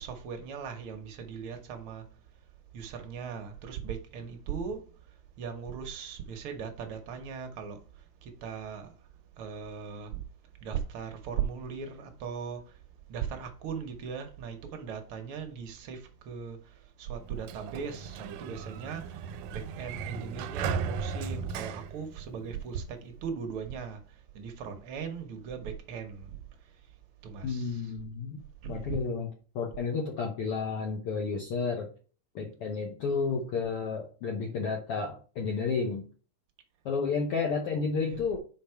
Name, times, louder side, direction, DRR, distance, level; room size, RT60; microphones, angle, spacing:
voice 1, 0.0-2.0 2.7-4.9 5.4-7.8 8.2-8.9 9.4-10.2 10.6-12.7 13.1-16.6 17.0-19.2 19.5-24.0 24.3-26.3 27.2-27.9 28.6-29.0 38.0-38.2, right 7 dB, 70° right, 1.3 m, -38 dB
Sliding door, 17.2-22.8, right 6 dB, 90° right, 2.1 m, -37 dB
voice 2, 27.4-29.3 29.5-31.9 32.3-36.0 36.8-38.4, left 5 dB, 65° left, 1.6 m, -31 dB
5.3 x 4.8 x 4.5 m
omnidirectional pair, 3.5 m